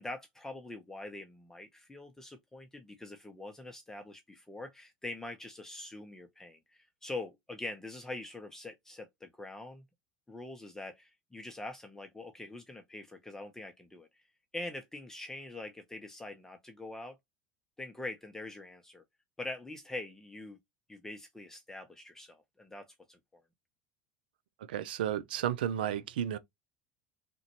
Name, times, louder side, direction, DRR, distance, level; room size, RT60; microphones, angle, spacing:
voice 1, 0.0-9.8 10.3-14.1 14.5-17.2 17.8-19.0 19.4-20.6 20.9-23.4, left 2 dB, 10° left, 0.5 m, -44 dB
voice 2, 24.7-26.4, right 10 dB, 85° right, 0.4 m, -32 dB
3.6 x 2.2 x 2.9 m
supercardioid pair, 100°, 5 cm